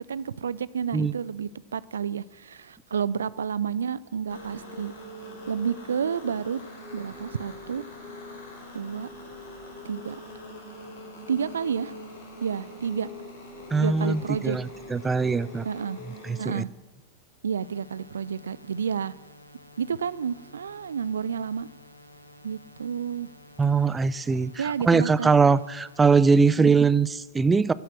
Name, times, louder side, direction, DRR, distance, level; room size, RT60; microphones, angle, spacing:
voice 1, 0.0-4.9 5.5-6.6 6.9-7.8 8.7-9.1 9.8-10.2 11.3-11.9 12.4-13.1 13.8-14.6 15.6-16.0 16.4-16.7 17.4-19.1 19.8-21.7 22.4-23.3 24.6-25.3 26.6-26.7, right 7 dB, 70° right, 0.4 m, -30 dB
sound 1, 4.3-16.5, left 2 dB, 60° left, 5.0 m, -43 dB
voice 2, 13.7-15.6 16.2-16.6 23.6-27.7, right 4 dB, 15° right, 0.5 m, -22 dB
sound 2, 17.6-26.6, left 1 dB, 90° right, 1.2 m, -52 dB
14.0 x 10.0 x 7.8 m
figure-of-eight pair, 90°, 0 cm